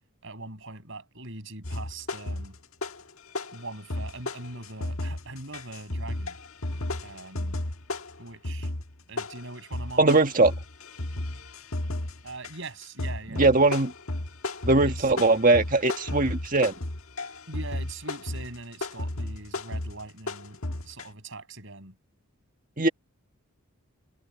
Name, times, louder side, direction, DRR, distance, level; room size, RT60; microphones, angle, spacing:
voice 1, 0.2-2.6 3.5-6.4 7.0-7.6 8.2-8.7 9.1-10.3 12.2-13.7 14.8-15.1 17.5-22.0, right 2 dB, 55° right, 7.3 m, -42 dB
sound 1, 1.6-3.1 3.3-21.0, left 1 dB, 70° left, 1.5 m, -34 dB
voice 2, 10.0-10.5 13.3-13.9 14.6-16.7 22.8-22.9, right 2 dB, 35° right, 1.7 m, -20 dB
head